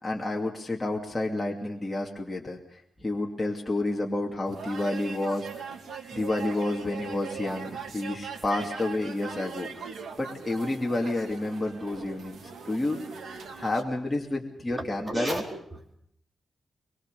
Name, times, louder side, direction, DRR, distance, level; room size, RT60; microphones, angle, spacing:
voice 1, 0.0-5.5 6.1-9.9 10.2-13.0 13.6-15.4, left 2 dB, 15° left, -1 dB, 2.8 m, -30 dB
sound 1, 4.5-13.8, right 6 dB, 75° right, 3.0 m, -40 dB
voice 2, 14.8-16.0, right 1 dB, 25° right, 1 dB, 4.5 m, -34 dB
24.0 x 22.5 x 6.9 m, 0.67 s
wide cardioid pair, 120°, 0 cm